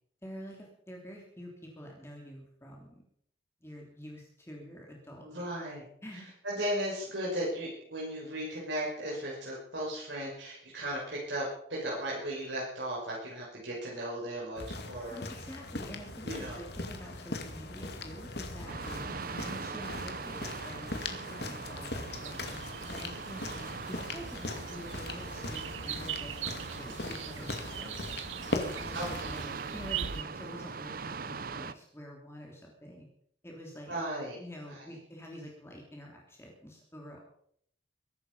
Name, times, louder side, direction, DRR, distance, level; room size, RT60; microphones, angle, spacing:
voice 1, 0.2-3.0 3.6-5.4 6.0-6.3 15.1-16.3 16.5-19.1 19.4-22.6 22.9-26.5 26.8-28.0 28.4-33.1 33.4-34.0 34.4-37.2, equal, 15° left, -1 dB, 3.2 m, -47 dB
voice 2, 5.2-15.2 16.2-16.6 28.9-29.4 33.9-34.4 34.6-35.0, right 1 dB, 70° right, -4 dB, 5.9 m, -36 dB
sound 1, 14.6-29.4, left 2 dB, 55° left, 2.3 m, -40 dB
Stormy Wind, 18.7-31.7, right 5 dB, 50° right, 0.6 m, -42 dB
sound 2, 22.1-30.2, right 9 dB, 90° right, 0.9 m, -42 dB
22.0 x 12.0 x 5.4 m, 0.67 s
head